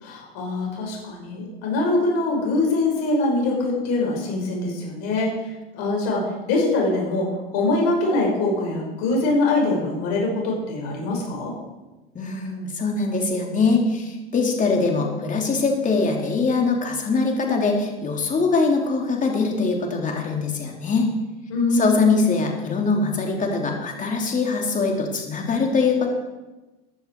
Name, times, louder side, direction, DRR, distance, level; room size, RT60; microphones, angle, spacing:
voice 1, 0.0-5.3 5.7-11.5 21.5-22.1, left 2 dB, 55° left, -1 dB, 5.7 m, -23 dB
voice 2, 12.1-21.1 21.7-26.1, left 4 dB, 25° left, 1 dB, 3.2 m, -22 dB
15.5 x 10.5 x 4.7 m, 1.1 s
hypercardioid pair, 100°, 30 cm